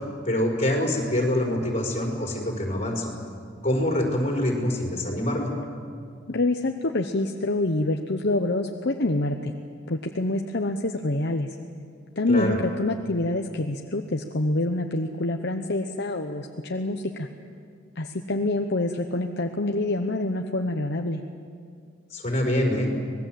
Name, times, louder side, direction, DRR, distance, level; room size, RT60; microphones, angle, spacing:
voice 1, 0.2-3.1 3.6-5.5 12.3-12.6 22.1-22.9, left 1 dB, 35° left, 0 dB, 5.0 m, -25 dB
voice 2, 6.3-9.5 9.9-11.5 12.2-17.3 18.0-21.2, left 2 dB, 60° left, 4 dB, 1.0 m, -26 dB
25.5 x 20.0 x 7.8 m, 2.2 s
head